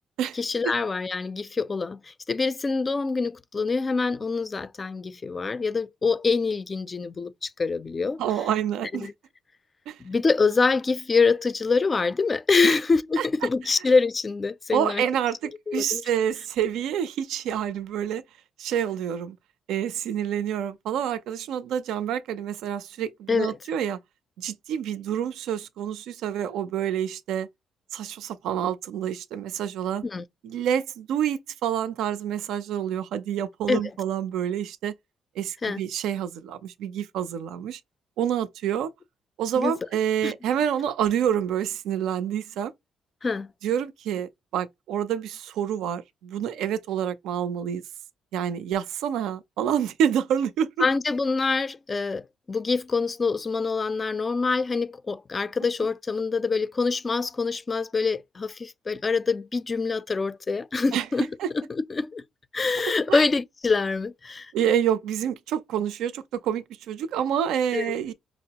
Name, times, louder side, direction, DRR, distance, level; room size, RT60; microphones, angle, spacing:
voice 1, 0.4-8.2 8.9-9.1 10.0-15.0 15.7-16.0 23.3-23.6 30.0-30.2 33.7-33.8 35.6-35.8 39.6-39.7 40.2-40.3 43.2-43.5 50.8-61.3 61.5-62.2 62.5-64.5 67.7-67.9, left 4 dB, 30° left, 0.4 m, -25 dB
voice 2, 8.2-9.1 9.9-10.0 12.6-12.8 13.2-13.3 13.6-13.7 14.7-18.2 18.6-19.4 19.7-24.0 24.4-27.5 27.9-30.0 30.4-35.0 35.4-37.8 38.2-38.9 39.4-42.7 43.6-47.8 48.3-50.9 60.9-61.1 61.4-61.5 63.1-63.2 64.5-68.1, right 9 dB, 85° right, 0.4 m, -28 dB
5.0 x 2.0 x 2.8 m
cardioid pair, 90°, 0 cm